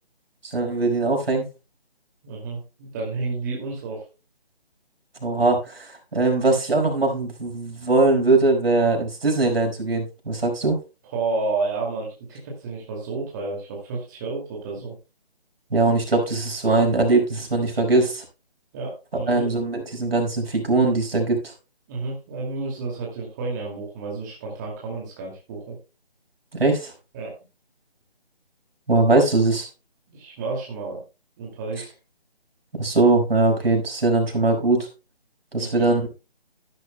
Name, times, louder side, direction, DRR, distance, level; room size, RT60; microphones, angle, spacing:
voice 1, 0.4-1.4 5.2-10.8 15.7-18.2 19.3-21.4 26.5-26.9 28.9-29.7 32.8-34.9 35.5-36.0, right 3 dB, 75° right, 2 dB, 5.2 m, -21 dB
voice 2, 2.2-4.1 11.0-15.0 18.7-19.5 21.9-25.8 27.1-27.4 30.1-31.0 31.4-31.9 35.6-36.0, right 3 dB, 20° right, -2 dB, 2.4 m, -31 dB
12.5 x 11.5 x 2.2 m, 0.29 s
figure-of-eight pair, 165°, 30 cm